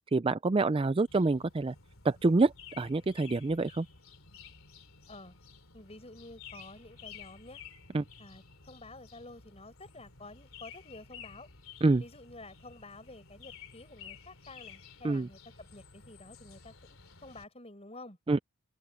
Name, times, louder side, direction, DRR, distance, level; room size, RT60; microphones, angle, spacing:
voice 1, 0.1-1.7 2.0-3.9 7.9-8.0 11.8-12.0 15.0-15.3 18.3-18.4, right 3 dB, 25° right, 0.4 m, -26 dB
sound 1, 1.1-17.5, left 6 dB, 70° left, 2.9 m, -53 dB
voice 2, 5.7-7.6 8.2-11.5 12.0-18.2, left 2 dB, 30° left, 6.7 m, -50 dB
open air
head